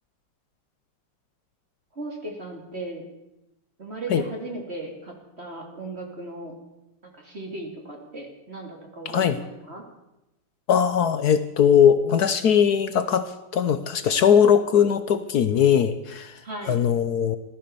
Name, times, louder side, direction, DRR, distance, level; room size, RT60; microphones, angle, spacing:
voice 1, 1.9-3.0 3.8-6.5 7.0-9.8 16.4-16.8, right 2 dB, 30° right, 1 dB, 2.6 m, -36 dB
voice 2, 9.1-9.4 10.7-16.4 16.7-17.4, left 8 dB, 65° left, 12 dB, 1.0 m, -20 dB
15.5 x 13.0 x 6.9 m, 0.92 s
omnidirectional pair, 2.3 m